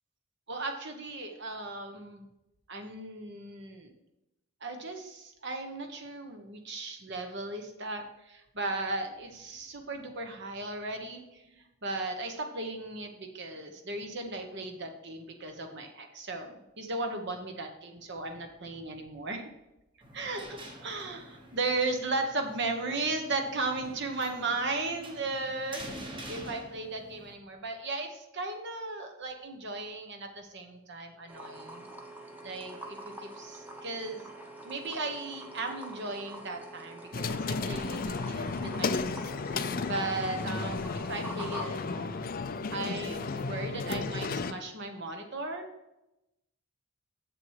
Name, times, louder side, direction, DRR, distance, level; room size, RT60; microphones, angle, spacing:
voice 1, 0.5-2.2 2.7-3.9 4.6-19.5 20.1-25.8 26.3-31.9 32.4-34.3 34.6-42.3 42.7-45.7, right 2 dB, 55° right, 5 dB, 1.2 m, -36 dB
sound 1, 20.0-27.3, right 1 dB, 25° right, 1.3 m, -47 dB
sound 2, 31.3-41.7, right 1 dB, 10° right, 1.0 m, -45 dB
sound 3, 37.1-44.5, left 4 dB, 40° left, 0.4 m, -33 dB
7.6 x 7.2 x 4.8 m, 0.92 s
head